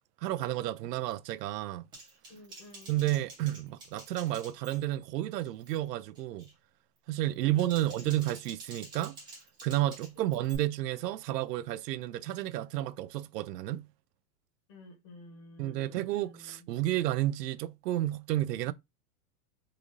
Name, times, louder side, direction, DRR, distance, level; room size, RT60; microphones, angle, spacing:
voice 1, 0.2-1.8 2.9-6.5 7.1-9.2 9.6-13.9 15.6-18.7, right 14 dB, 90° right, 0.6 m, -31 dB
Typing, 1.9-5.1 5.4-5.8 6.2-6.5 7.3-10.6, right 2 dB, 10° right, 0.9 m, -50 dB
voice 2, 2.3-2.9 7.5-8.2 10.2-10.4 14.7-16.7, left 2 dB, 20° left, 0.5 m, -52 dB
3.8 x 3.1 x 2.6 m
supercardioid pair, 175°, 47 cm